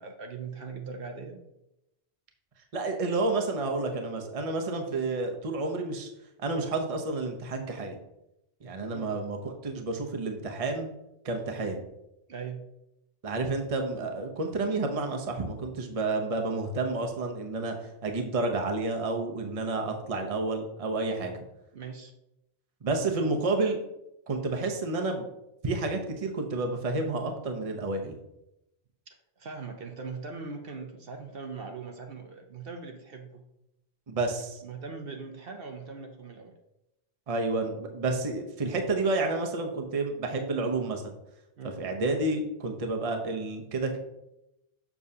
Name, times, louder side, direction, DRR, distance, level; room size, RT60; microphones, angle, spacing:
voice 1, 0.0-1.4 8.9-9.1 12.3-12.7 21.7-22.1 29.1-33.4 34.6-36.5 41.6-41.8, right 4 dB, 65° right, 4 dB, 0.9 m, -40 dB
voice 2, 2.7-6.1 6.4-8.0 8.6-10.9 11.2-11.8 13.2-17.7 18.0-21.3 22.8-23.8 24.3-25.3 25.6-28.2 34.1-34.6 37.3-41.1 41.8-44.0, right 3 dB, 35° right, 3 dB, 0.8 m, -30 dB
7.0 x 6.2 x 2.8 m, 0.87 s
omnidirectional pair, 1.1 m